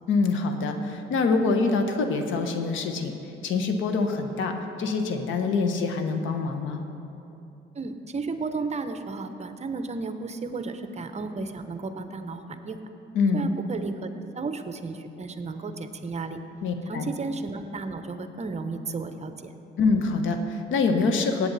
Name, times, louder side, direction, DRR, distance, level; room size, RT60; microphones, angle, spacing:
voice 1, 0.1-3.1 3.4-6.8 13.1-13.5 16.6-17.1 19.8-21.5, left 4 dB, 80° left, 6 dB, 1.1 m, -25 dB
voice 2, 7.7-12.8 13.3-16.4 16.9-19.5, right 3 dB, 35° right, 8 dB, 0.8 m, -33 dB
17.5 x 8.6 x 4.1 m, 2.9 s
cardioid pair, 90°, 20 cm